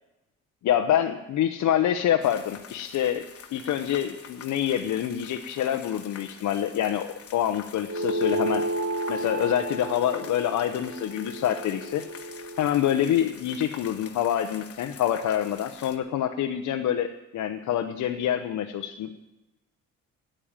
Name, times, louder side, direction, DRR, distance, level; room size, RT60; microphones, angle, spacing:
voice 1, 0.6-3.2 3.5-8.7 9.1-12.0 12.6-19.1, left 10 dB, 70° left, 4 dB, 0.8 m, -26 dB
sound 1, 2.2-16.0, left 7 dB, 50° left, 1.4 m, -46 dB
sound 2, 7.9-12.7, right 1 dB, 50° right, 2.2 m, -31 dB
12.0 x 8.9 x 8.8 m, 0.99 s
cardioid pair, 90°, 30 cm